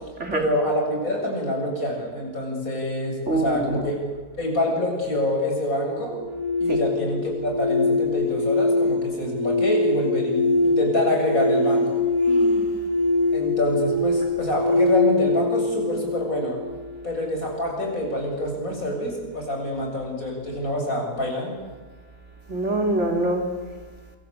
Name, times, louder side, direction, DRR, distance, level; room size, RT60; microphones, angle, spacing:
voice 1, 0.3-4.0 4.4-6.2 6.6-12.0 13.3-16.6 17.0-21.5, left 1 dB, 60° left, 1 dB, 7.9 m, -26 dB
voice 2, 3.3-3.9 6.7-6.8 12.3-12.7 22.5-23.5, right 2 dB, 50° right, 2 dB, 3.6 m, -25 dB
sound 1, 6.1-17.1, left 2 dB, 90° left, 7.0 m, -23 dB
27.5 x 24.0 x 8.5 m, 1.3 s
omnidirectional pair, 1.6 m